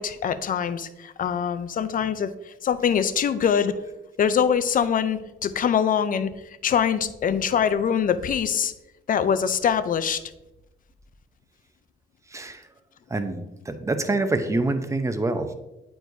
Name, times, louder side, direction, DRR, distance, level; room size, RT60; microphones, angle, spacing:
voice 1, 0.0-3.7 4.2-6.3 6.6-8.7 9.1-10.2, left 7 dB, 45° left, 12 dB, 0.5 m, -23 dB
voice 2, 12.3-12.6 13.1-15.5, right 2 dB, 15° right, 8 dB, 0.7 m, -26 dB
8.9 x 4.6 x 2.7 m, 0.97 s
cardioid pair, 90°, 20 cm